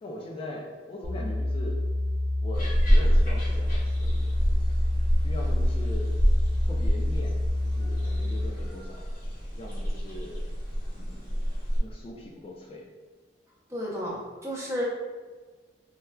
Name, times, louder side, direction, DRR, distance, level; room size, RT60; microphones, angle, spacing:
voice 1, 0.0-1.8 2.4-4.7 5.2-6.2 6.6-9.1 9.5-10.5 11.0-11.4 11.8-12.9, left 1 dB, 30° left, -1 dB, 0.3 m, -41 dB
sound 1, 1.0-8.5, left 1 dB, 70° right, 0.7 m, -28 dB
sound 2, 2.5-11.8, equal, 55° left, 0.9 m, -27 dB
voice 2, 13.7-14.8, equal, 15° right, -5 dB, 0.7 m, -32 dB
4.1 x 2.3 x 2.2 m, 1.4 s
head